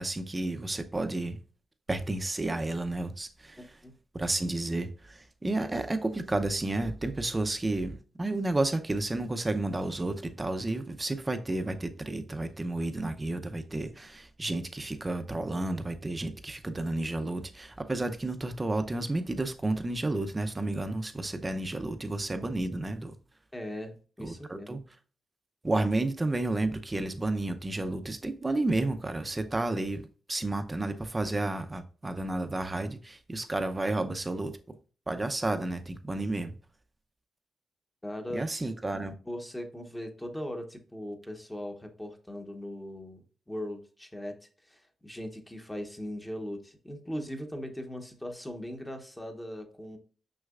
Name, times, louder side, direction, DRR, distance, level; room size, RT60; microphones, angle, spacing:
voice 1, 0.0-1.4 1.9-3.6 4.1-23.1 24.2-24.8 25.6-30.0 30.3-34.6 35.1-36.5 38.3-39.1, right 2 dB, 15° right, 0.6 m, -31 dB
voice 2, 3.6-3.9 23.5-24.8 38.0-38.4 39.2-44.3 44.6-50.0, equal, 10° left, 0.9 m, -39 dB
6.4 x 6.1 x 2.4 m
wide cardioid pair, 155°, 0 cm